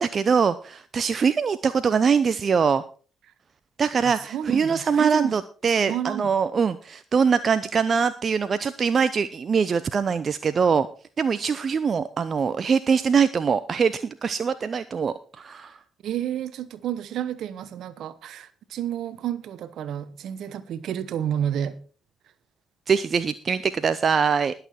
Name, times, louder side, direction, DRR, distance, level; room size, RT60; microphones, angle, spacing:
voice 1, 0.0-2.8 3.8-10.9 11.2-15.8 22.9-24.5, right 6 dB, 45° right, 0.7 m, -23 dB
voice 2, 4.0-5.3 5.8-6.3 16.0-21.8, right 10 dB, 65° right, 1.1 m, -30 dB
20.0 x 7.0 x 4.4 m
figure-of-eight pair, 40°, 0 cm